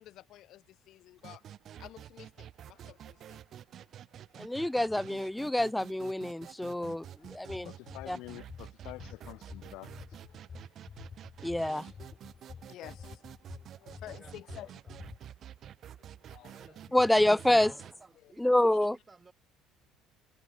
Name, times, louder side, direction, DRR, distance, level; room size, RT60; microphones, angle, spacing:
voice 1, 0.0-1.4 1.8-3.4 7.2-7.3 10.3-10.6 12.5-13.2 13.8-14.7 16.0-17.0 18.2-18.3 18.7-18.8, left 14 dB, 60° left, 1.0 m, -51 dB
sound 1, 1.2-17.9, right 10 dB, 45° right, 1.1 m, -49 dB
voice 2, 4.4-7.7 8.1-8.2 11.4-11.9 16.9-17.8 18.4-19.0, left 1 dB, 5° left, 0.4 m, -27 dB
sound 2, 7.2-15.2, left 6 dB, 30° left, 3.5 m, -49 dB
voice 3, 7.6-10.2 11.8-11.9, left 22 dB, 80° left, 1.6 m, -48 dB
voice 4, 13.5-15.1 16.5-17.6 17.8-18.5 18.9-19.3, right 4 dB, 20° right, 4.9 m, -60 dB
cardioid pair, 135°, 0 cm